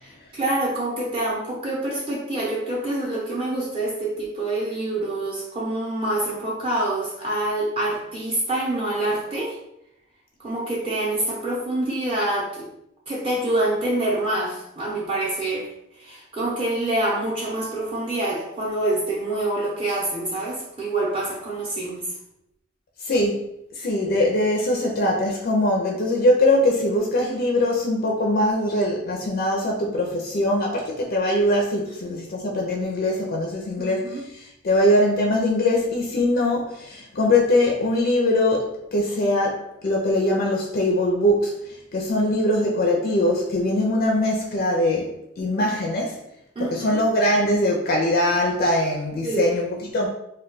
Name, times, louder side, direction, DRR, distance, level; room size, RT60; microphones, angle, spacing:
voice 1, 0.0-9.6 10.4-12.7 13.1-15.7 16.0-22.0 33.8-34.2 46.6-47.0 49.2-49.5, right 2 dB, 25° right, -6 dB, 0.6 m, -26 dB
voice 2, 23.0-23.4 23.7-46.2 46.6-50.1, left 1 dB, 45° left, -1 dB, 0.4 m, -22 dB
2.2 x 2.2 x 3.8 m, 0.80 s
head